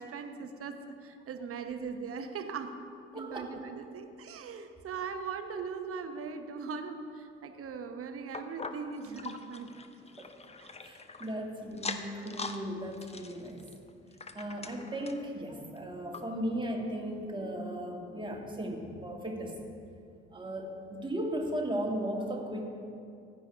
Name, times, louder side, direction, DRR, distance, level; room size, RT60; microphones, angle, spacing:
voice 1, 0.0-2.8 3.1-9.7 10.6-10.7, right 5 dB, 45° right, 8 dB, 1.1 m, -40 dB
voice 2, 3.1-3.5 10.2-10.3 10.8-13.7 14.3-19.6 20.3-22.6, right 1 dB, 15° right, 0 dB, 2.2 m, -36 dB
sound 1, 8.3-11.3 11.7-12.6 12.9-15.3 15.8-15.9 16.1-16.2 16.9-17.0, left 4 dB, 20° left, 0.8 m, -42 dB
15.5 x 11.0 x 3.6 m, 2.5 s
figure-of-eight pair, 45°, 33 cm